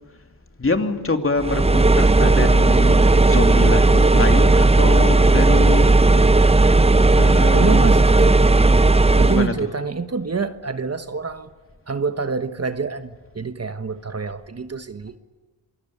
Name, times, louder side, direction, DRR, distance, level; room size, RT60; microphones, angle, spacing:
voice 1, 0.6-5.9 7.1-8.0 9.3-9.7, left 3 dB, 30° left, 2.9 m, -25 dB
sound 1, 1.4-9.5, right 2 dB, 15° right, 0.8 m, -14 dB
voice 2, 7.5-8.3 9.1-11.5 11.9-15.2, right 5 dB, 35° right, 1.3 m, -27 dB
27.5 x 18.5 x 8.8 m
cardioid pair, 65°, 42 cm